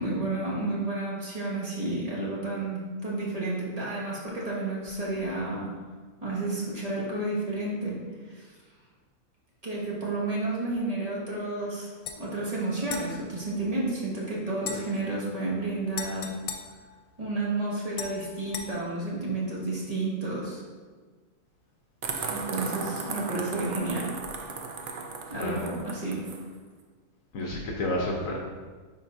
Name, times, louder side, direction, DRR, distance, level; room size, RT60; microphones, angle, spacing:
voice 1, 0.0-5.7 6.2-8.0 8.2-8.5 9.6-16.3 17.2-20.6 22.3-24.1 25.3-26.2, right 2 dB, 25° right, -6 dB, 1.4 m, -31 dB
sound 1, 12.0-12.2 12.8-14.1 14.6-17.5 17.9-18.7, left 6 dB, 85° left, 1.2 m, -40 dB
sound 2, 22.0-26.4, right 4 dB, 75° right, 0.4 m, -36 dB
voice 2, 27.3-28.4, left 1 dB, 65° left, -2 dB, 1.1 m, -30 dB
10.0 x 3.8 x 2.6 m, 1.4 s
omnidirectional pair, 1.6 m